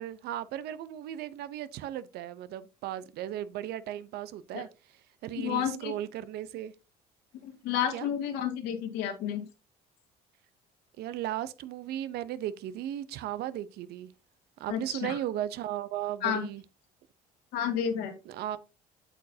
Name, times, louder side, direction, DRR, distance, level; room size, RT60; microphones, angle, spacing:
voice 1, 0.0-4.7 5.2-6.7 7.9-8.1 11.0-14.1 14.6-16.6 18.3-18.6, right 12 dB, 70° right, 0.8 m, -36 dB
voice 2, 5.3-5.9 7.4-9.4 14.7-15.1 16.2-16.5 17.5-18.1, left 9 dB, 80° left, 2.4 m, -31 dB
8.3 x 7.7 x 2.8 m
supercardioid pair, 90°, 17 cm